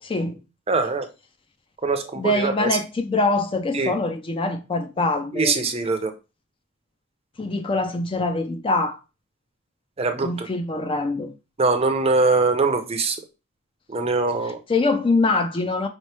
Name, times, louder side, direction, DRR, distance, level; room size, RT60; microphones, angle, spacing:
voice 1, 0.0-0.4 2.2-5.5 7.4-9.0 10.2-11.3 14.7-15.9, left 2 dB, 25° left, 0.4 m, -24 dB
voice 2, 0.7-1.1 1.8-2.7 3.7-3.9 5.3-6.1 10.0-10.5 11.6-13.2 13.9-14.6, right 3 dB, 30° right, 0.6 m, -22 dB
5.1 x 2.9 x 3.3 m
head